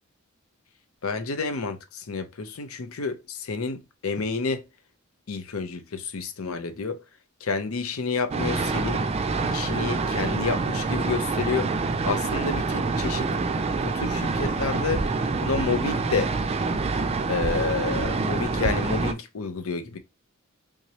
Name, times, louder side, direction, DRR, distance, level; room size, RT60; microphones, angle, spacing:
voice 1, 1.0-4.7 5.3-7.0 7.4-9.1 9.5-11.7 12.1-13.3 13.8-15.1 15.4-16.3 17.3-20.0, left 4 dB, 85° left, 0.7 m, -29 dB
sound 1, 8.3-19.1, right 3 dB, 30° right, 0.3 m, -26 dB
3.5 x 3.0 x 2.8 m
head